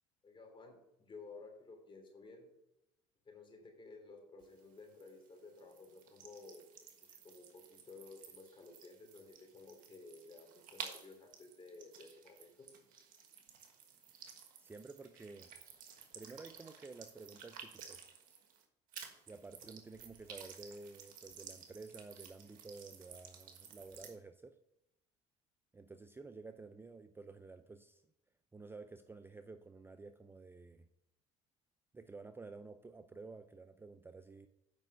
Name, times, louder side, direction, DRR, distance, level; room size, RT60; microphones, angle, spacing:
voice 1, 0.2-2.5 3.2-6.6 7.2-12.7, left 3 dB, 35° left, 2 dB, 3.2 m, -55 dB
sound 1, 4.4-18.6 18.9-24.2, right 7 dB, 65° right, 1.5 m, -54 dB
voice 2, 14.6-15.5 16.1-18.1 19.3-24.6 25.7-28.0 28.5-30.9 31.9-34.5, right 3 dB, 15° right, 10 dB, 0.5 m, -52 dB
8.1 x 5.4 x 5.3 m, 0.85 s
supercardioid pair, 80°, 15 cm